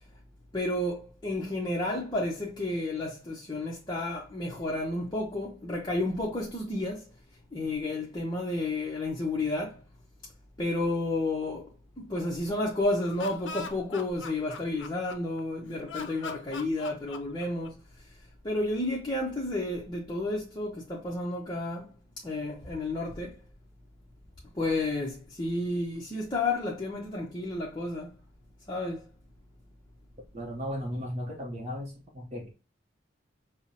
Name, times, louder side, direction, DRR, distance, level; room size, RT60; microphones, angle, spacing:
voice 1, 0.5-7.1 7.5-9.8 10.6-11.7 12.0-17.8 18.4-21.9 22.2-23.4 24.5-28.1 28.7-29.0, left 2 dB, 20° left, 0.7 m, -31 dB
Laughter, 12.9-15.4 15.9-17.9, left 5 dB, 75° left, 0.5 m, -41 dB
voice 2, 30.3-32.5, equal, 35° right, 0.7 m, -36 dB
5.6 x 2.0 x 2.7 m
head